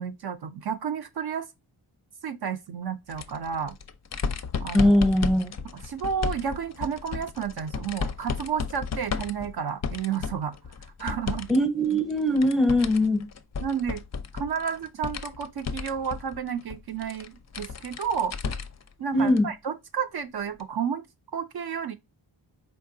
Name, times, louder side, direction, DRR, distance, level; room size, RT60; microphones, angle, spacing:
voice 1, 0.0-1.5 2.2-3.8 4.6-4.9 5.8-10.6 10.8-11.5 13.6-14.0 14.3-18.3 19.0-21.0 21.3-21.9, right 7 dB, 60° right, 0.5 m, -31 dB
sound 1, 3.1-11.6 11.9-18.9 19.3-19.4 20.6-20.7, left 5 dB, 40° left, 0.4 m, -34 dB
voice 2, 4.7-5.5 11.5-13.3 19.1-19.5, left 1 dB, ahead, 0.7 m, -21 dB
4.4 x 3.2 x 2.6 m
wide cardioid pair, 120°, 44 cm